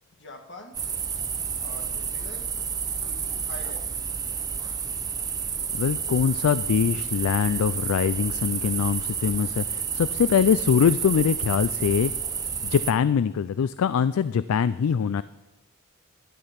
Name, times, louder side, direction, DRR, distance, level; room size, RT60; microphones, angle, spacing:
voice 1, 0.2-0.8 1.6-2.5 3.0-3.9, left 1 dB, 55° left, 4 dB, 1.6 m, -44 dB
sound 1, 0.7-12.9, right 6 dB, 15° right, 0.5 m, -30 dB
voice 2, 5.7-12.1 12.6-15.2, left 7 dB, 75° left, 16 dB, 0.3 m, -23 dB
12.0 x 11.0 x 5.7 m, 1.1 s
head